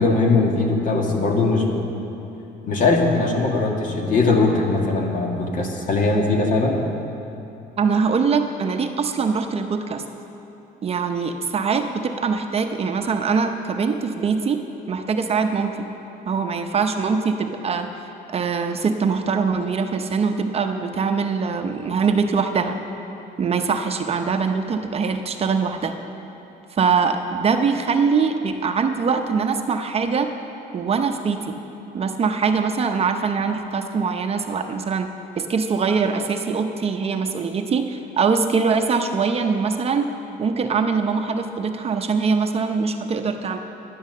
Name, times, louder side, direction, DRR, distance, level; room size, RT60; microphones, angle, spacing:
voice 1, 0.0-1.9 2.6-6.8, left 3 dB, 50° left, 1 dB, 1.9 m, -20 dB
voice 2, 7.8-10.0 10.8-14.6 14.9-15.9 16.3-17.9 18.3-22.8 23.4-25.9 26.7-30.3 30.7-31.6 31.9-35.1 35.4-40.1 40.4-43.6, right 5 dB, 35° right, 5 dB, 0.7 m, -22 dB
11.0 x 10.0 x 6.6 m, 2.9 s
cardioid pair, 110°, 17 cm